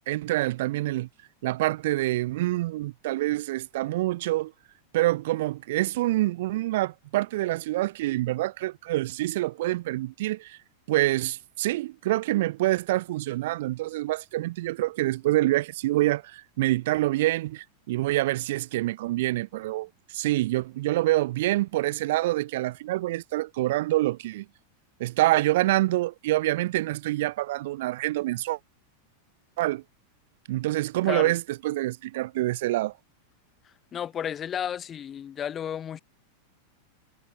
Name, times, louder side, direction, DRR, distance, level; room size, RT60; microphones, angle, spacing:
voice 1, 0.1-1.1 1.4-4.5 4.9-10.6 10.9-24.5 25.0-28.6 29.6-29.8 30.5-32.9, right 17 dB, 55° right, 0.4 m, -26 dB
voice 2, 33.9-36.0, left 9 dB, 25° left, 0.5 m, -32 dB
figure-of-eight pair, 90°, 0 cm